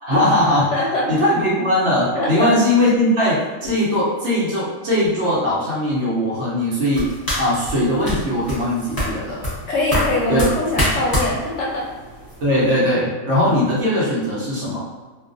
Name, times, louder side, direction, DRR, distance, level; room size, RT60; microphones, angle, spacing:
voice 1, 0.0-0.7 1.1-7.1 7.4-9.4 10.3-10.6 12.4-14.8, left 1 dB, 60° right, -7 dB, 1.0 m, -19 dB
voice 2, 0.7-1.2 2.1-2.5 9.7-11.8, left 2 dB, 65° left, -4 dB, 0.9 m, -22 dB
sound 1, 6.9-12.7, equal, 20° left, 0.6 m, -26 dB
2.4 x 2.3 x 2.5 m, 1.3 s
omnidirectional pair, 1.5 m